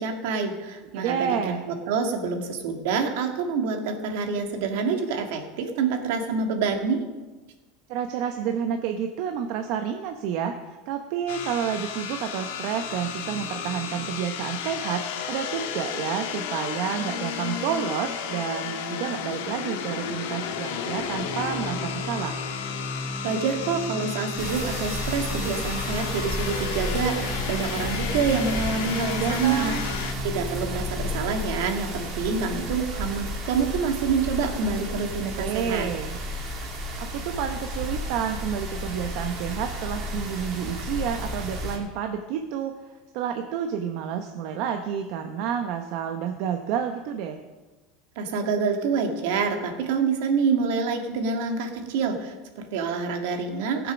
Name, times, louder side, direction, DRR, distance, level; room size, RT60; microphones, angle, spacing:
voice 1, 0.0-1.6 1.9-7.1 23.2-29.7 30.2-35.9 48.2-53.9, right 5 dB, 70° right, 4 dB, 2.0 m, -27 dB
voice 2, 0.9-1.6 7.9-22.4 29.2-29.9 35.4-36.2 37.0-42.7 43.1-47.4, right 8 dB, 55° right, 5 dB, 0.8 m, -30 dB
sound 1, 11.3-30.1, left 7 dB, 90° left, 1.4 m, -33 dB
Organ, 20.8-31.6, left 1 dB, 5° right, 0.8 m, -37 dB
sound 2, 24.4-41.8, equal, 35° right, 2.7 m, -32 dB
15.5 x 7.3 x 6.2 m, 1.2 s
supercardioid pair, 155°, 0 cm